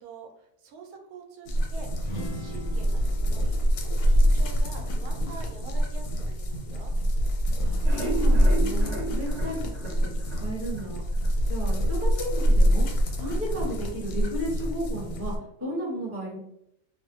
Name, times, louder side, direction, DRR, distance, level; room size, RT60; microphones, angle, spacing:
voice 1, 0.0-6.9, right 4 dB, 80° right, 2 dB, 1.1 m, -46 dB
sound 1, 1.5-15.4, equal, 90° left, 1.1 m, -25 dB
sound 2, 2.0-5.7, equal, 65° left, 0.3 m, -42 dB
voice 2, 7.6-11.0 11.5-12.9 13.1-16.4, equal, 10° right, -6 dB, 0.8 m, -34 dB
sound 3, 7.6-10.9 11.2-11.3 11.7-11.8 12.2-12.3, right 1 dB, 55° right, 0.9 m, -33 dB
2.6 x 2.1 x 2.7 m, 0.78 s
omnidirectional pair, 1.6 m